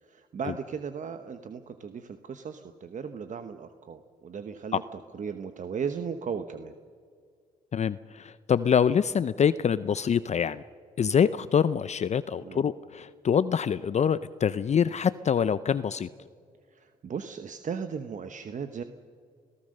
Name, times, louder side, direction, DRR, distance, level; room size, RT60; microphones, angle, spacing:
voice 1, 0.0-6.7 12.4-12.6 16.7-18.8, right 6 dB, 50° right, 8 dB, 1.1 m, -36 dB
voice 2, 7.7-10.6 11.0-16.1, left 7 dB, 45° left, 15 dB, 0.6 m, -25 dB
26.5 x 16.5 x 6.6 m, 2.1 s
supercardioid pair, 65°, 16 cm